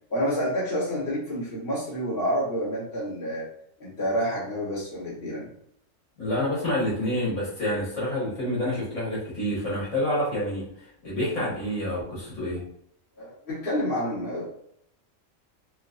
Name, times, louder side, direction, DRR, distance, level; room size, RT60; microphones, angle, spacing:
voice 1, 0.1-3.4 3.8-5.5 13.2-14.4, equal, 45° left, -10 dB, 1.7 m, -28 dB
voice 2, 6.2-10.6 11.0-12.6, left 1 dB, 70° left, -8 dB, 2.0 m, -28 dB
4.3 x 2.2 x 2.5 m, 0.68 s
omnidirectional pair, 1.3 m